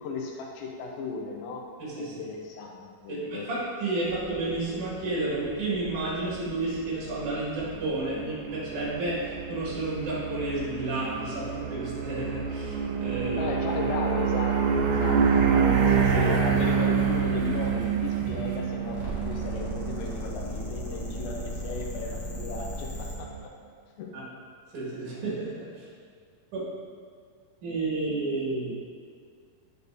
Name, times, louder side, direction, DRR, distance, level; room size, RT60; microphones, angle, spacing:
voice 1, 0.0-1.6 2.0-3.5 13.4-15.2 15.5-23.3 24.0-24.1, left 4 dB, 80° left, -1 dB, 2.4 m, -35 dB
voice 2, 1.8-2.2 3.1-13.5 15.0-15.1 24.1-24.2 24.7-25.8 26.5-26.6 27.6-28.7, right 2 dB, 55° right, -7 dB, 3.1 m, -31 dB
sound 1, 4.1-23.4, right 6 dB, 85° right, 2.6 m, -28 dB
sound 2, 18.8-23.2, left 1 dB, 50° left, 1.8 m, -36 dB
8.3 x 6.7 x 2.8 m, 2.1 s
omnidirectional pair, 4.6 m